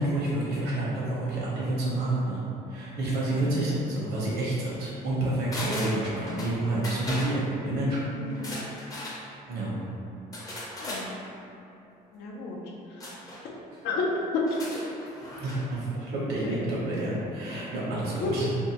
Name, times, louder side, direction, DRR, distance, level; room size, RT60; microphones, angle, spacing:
voice 1, 0.0-2.4 2.7-8.1 9.5-9.8 15.2-18.5, right 1 dB, 70° right, -6 dB, 0.9 m, -29 dB
sound 1, 5.5-6.5 6.8-7.3 8.3-9.2 10.3-11.1 13.0-13.4 14.4-15.6 15.9-16.0, left 1 dB, 20° left, 0.5 m, -37 dB
voice 2, 8.1-8.5 10.8-11.1 12.1-12.6 12.9-13.0 13.8-14.2 16.4-16.6 18.2-18.3, left 3 dB, 85° left, -3 dB, 0.5 m, -32 dB
2.6 x 2.1 x 2.8 m, 2.7 s
cardioid pair, 110°, 17 cm